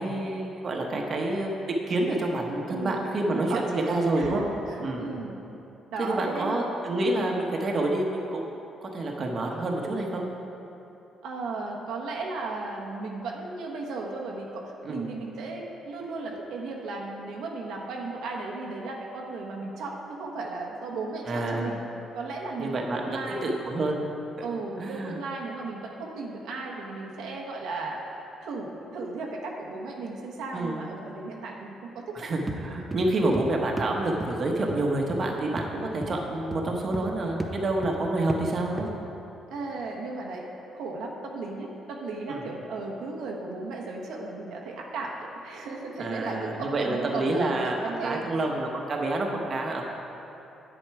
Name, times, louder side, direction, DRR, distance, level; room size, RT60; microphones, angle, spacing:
voice 1, 0.0-1.5 1.9-4.4 4.8-5.1 6.0-8.5 8.8-10.3 14.8-15.0 21.3-21.7 22.6-24.0 24.4-24.5 24.8-25.2 30.5-30.9 32.1-38.9 42.3-42.4 46.0-47.8 48.0-49.8, right 2 dB, 45° right, 0 dB, 1.1 m, -28 dB
voice 2, 2.7-4.4 4.7-5.4 5.9-6.6 7.0-7.2 11.2-21.8 22.1-23.6 24.4-28.1 28.4-32.3 39.5-40.5 40.7-48.3, right 3 dB, 85° right, -1 dB, 1.2 m, -35 dB
sound 1, 32.5-32.6 32.9-33.5 33.8-33.9 34.2-34.3 34.7-34.8 35.1-35.2 35.6-35.7 36.0-36.2 36.5-37.1 37.4-37.5 37.8-38.0 38.3-38.5 38.8-38.9, right 2 dB, 20° right, 0.7 m, -33 dB
9.0 x 7.5 x 4.8 m, 2.9 s
cardioid pair, 90°, 0 cm